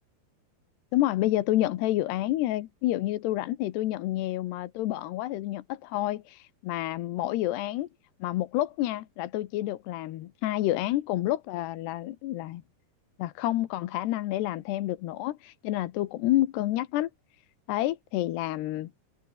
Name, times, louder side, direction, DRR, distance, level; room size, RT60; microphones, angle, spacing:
voice 1, 0.9-7.9 8.2-12.6 13.2-17.1 17.7-18.9, left 15 dB, 85° left, 3.3 m, -29 dB
open air
omnidirectional pair, 4.7 m